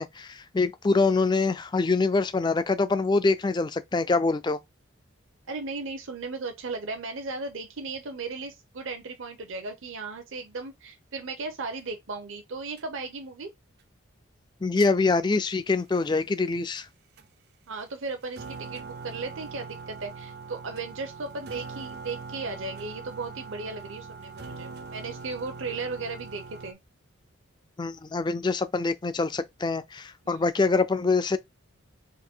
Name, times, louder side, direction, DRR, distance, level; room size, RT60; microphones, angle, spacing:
voice 1, 0.0-4.6 14.6-16.9 27.8-31.4, left 3 dB, 20° left, 0.3 m, -25 dB
voice 2, 5.5-13.5 17.7-26.8 30.2-30.4, right 3 dB, 65° right, 0.8 m, -36 dB
sound 1, 12.8-12.9 14.8-14.9 16.8-16.9 17.2-17.3 17.8-17.9 18.2-26.7, right 4 dB, 50° right, 0.4 m, -42 dB
3.9 x 2.6 x 4.4 m
head